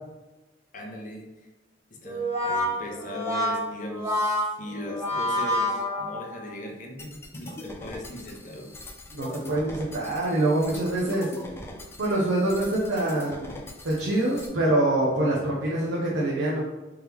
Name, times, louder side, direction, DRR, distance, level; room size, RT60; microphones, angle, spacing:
voice 1, 0.7-1.3 1.9-8.7, equal, 45° left, 0 dB, 0.7 m, -39 dB
Brass instrument, 2.0-6.6, left 1 dB, 15° right, 0.8 m, -28 dB
sound 1, 7.0-14.5, left 1 dB, 15° left, 0.4 m, -42 dB
voice 2, 9.1-11.3 12.0-13.5 13.8-16.6, right 1 dB, 90° right, -6 dB, 0.7 m, -25 dB
3.5 x 3.0 x 3.4 m, 1.1 s
head